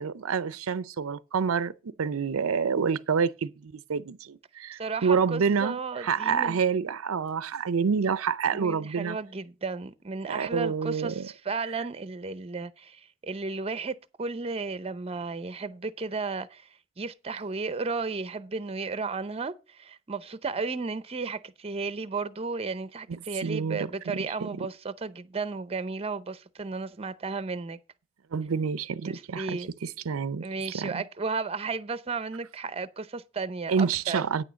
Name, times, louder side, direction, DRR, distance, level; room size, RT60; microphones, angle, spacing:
voice 1, 0.0-9.2 10.2-11.3 23.1-24.5 28.3-30.4 30.7-31.0 33.7-34.4, right 6 dB, 75° right, 0.5 m, -28 dB
voice 2, 4.7-6.6 8.5-16.7 17.0-27.8 29.1-29.7 30.4-34.2, right 4 dB, 30° right, 0.6 m, -34 dB
9.1 x 6.2 x 6.8 m
head